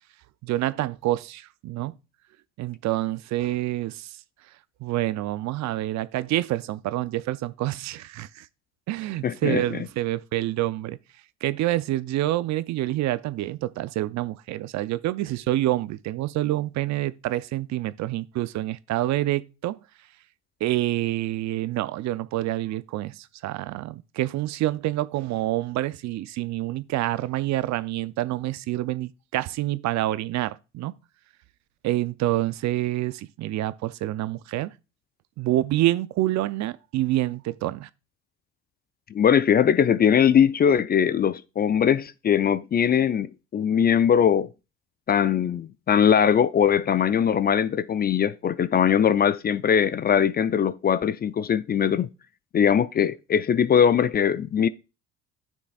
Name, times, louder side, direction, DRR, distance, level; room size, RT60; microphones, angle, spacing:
voice 1, 0.4-1.9 2.6-4.2 4.8-8.5 8.9-11.0 11.4-19.8 20.6-30.9 31.8-34.7 35.4-37.9, right 15 dB, 55° right, 0.5 m, -27 dB
voice 2, 9.2-9.6 39.1-44.5 45.1-52.1 52.5-54.7, left 8 dB, 30° left, 0.4 m, -21 dB
9.8 x 6.3 x 2.4 m
hypercardioid pair, 70°, 34 cm